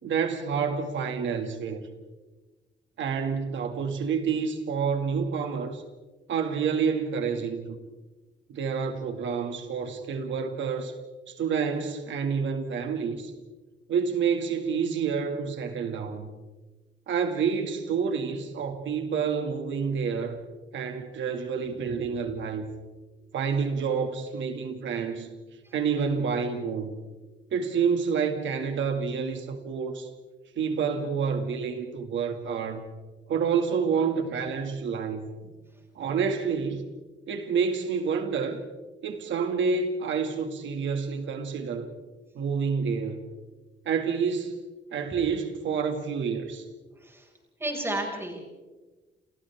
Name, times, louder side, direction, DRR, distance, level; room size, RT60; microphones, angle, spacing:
voice 1, 0.0-1.9 3.0-5.8 6.3-7.8 8.5-11.0 11.3-13.3 13.9-16.3 17.1-20.4 20.7-22.7 23.3-25.3 25.7-26.9 27.5-30.1 30.6-32.9 33.3-35.3 36.0-36.8 37.3-38.6 39.0-41.9 42.3-43.3 43.9-44.6 44.9-46.7, right 6 dB, 80° right, 2.2 m, -28 dB
voice 2, 47.6-48.4, right 1 dB, 15° right, 5.7 m, -32 dB
30.0 x 29.0 x 3.6 m
wide cardioid pair, 170°, 19 cm